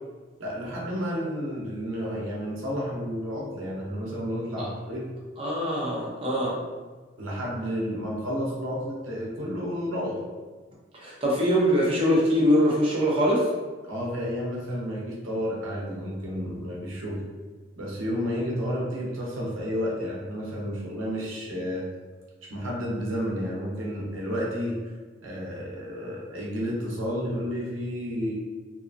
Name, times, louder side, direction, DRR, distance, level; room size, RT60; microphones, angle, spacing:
voice 1, 0.4-5.1 7.2-10.2 13.8-17.2 17.8-21.9 22.5-24.8 25.2-28.3, equal, 90° right, -4 dB, 0.7 m, -31 dB
voice 2, 5.4-6.6 11.0-13.5, equal, 30° right, -5 dB, 0.6 m, -23 dB
2.7 x 2.3 x 2.5 m, 1.4 s
head